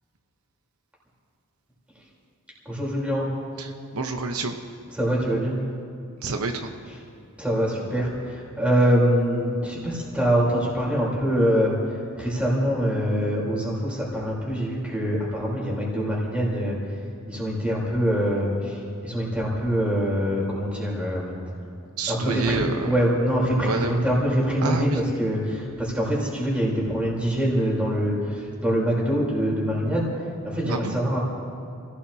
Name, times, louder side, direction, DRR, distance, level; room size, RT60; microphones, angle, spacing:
voice 1, 2.7-3.3 5.0-5.6 7.4-17.0 17.3-21.4 22.1-31.2, equal, 5° right, -5 dB, 3.8 m, -24 dB
voice 2, 3.6-4.6 6.2-6.7 22.0-22.9 23.6-24.0 24.6-25.0 30.7-31.0, right 3 dB, 85° right, 5 dB, 0.9 m, -28 dB
28.0 x 16.5 x 2.9 m, 2.5 s
head